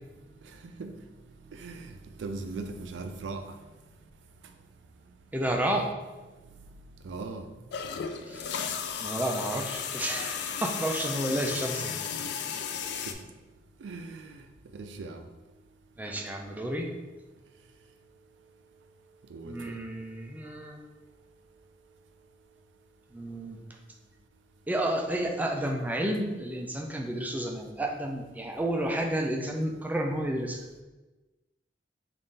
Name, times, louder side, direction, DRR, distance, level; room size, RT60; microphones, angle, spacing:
voice 1, 1.5-3.4 7.0-7.5 12.2-12.3 13.0-13.1 13.8-14.4 14.7-15.2 19.3-19.8, right 3 dB, 90° right, 6 dB, 0.4 m, -39 dB
voice 2, 5.3-5.9 8.3-8.5 9.0-12.0 16.0-16.9 19.4-20.8 23.1-23.6 24.7-30.6, right 1 dB, 10° right, 1 dB, 0.4 m, -31 dB
sound 1, 7.7-13.1, left 7 dB, 65° left, 0.3 m, -34 dB
3.6 x 2.5 x 3.9 m, 1.2 s
head